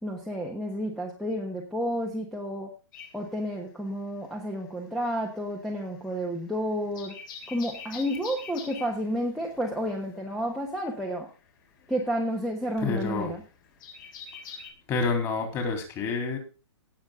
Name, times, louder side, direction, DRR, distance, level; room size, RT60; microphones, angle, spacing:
voice 1, 0.0-2.7 3.1-7.2 7.5-11.3 11.9-13.4, equal, ahead, 0 dB, 1.2 m, -31 dB
sound 1, 2.9-4.3 4.6-14.7, left 6 dB, 45° left, 3.2 m, -45 dB
voice 2, 12.8-13.3 14.9-16.4, left 4 dB, 20° left, 4 dB, 3.5 m, -28 dB
18.0 x 7.2 x 3.7 m, 0.32 s
hypercardioid pair, 160°, 15 cm